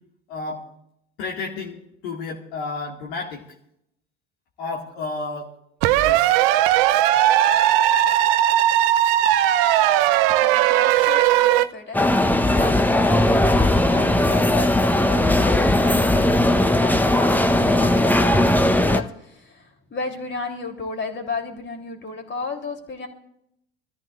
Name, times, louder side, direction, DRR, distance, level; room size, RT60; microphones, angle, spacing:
voice 1, 0.3-0.7 1.2-3.4 4.6-5.5 5.9-6.3, left 3 dB, 70° left, -2 dB, 2.1 m, -31 dB
sound 1, 5.8-11.7, right 13 dB, 60° right, 0.7 m, -18 dB
voice 2, 10.3-23.1, left 4 dB, 35° left, 3 dB, 3.4 m, -34 dB
sound 2, 11.9-19.0, left 1 dB, 5° left, 0.9 m, -18 dB
26.5 x 14.0 x 2.5 m, 0.76 s
figure-of-eight pair, 65°, 33 cm